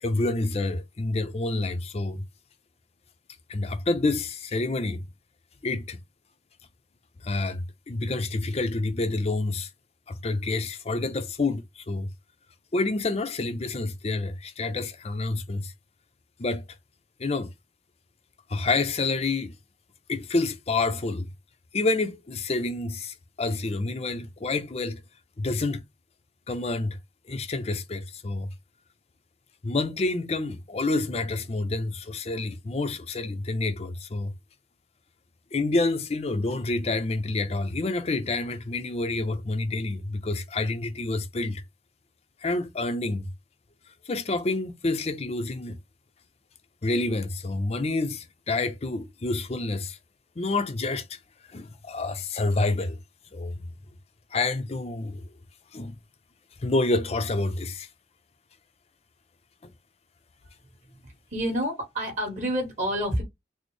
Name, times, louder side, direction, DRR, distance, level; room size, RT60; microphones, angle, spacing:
voice 1, 0.0-2.2 3.5-5.0 5.6-6.0 7.2-9.7 10.1-12.1 12.7-15.7 16.4-16.6 17.2-17.5 18.5-19.5 20.1-21.3 21.7-25.0 25.4-25.8 26.5-27.0 27.3-28.5 29.6-34.3 35.5-41.6 42.4-43.3 44.1-45.8 46.8-50.0 50.4-51.2 51.5-53.0 53.3-53.7 54.3-55.3 55.7-56.0 56.6-57.9 59.6-59.7, left 2 dB, 35° left, 0.5 m, -28 dB
voice 2, 61.3-63.2, equal, 40° right, 1.5 m, -28 dB
4.2 x 2.0 x 3.1 m
head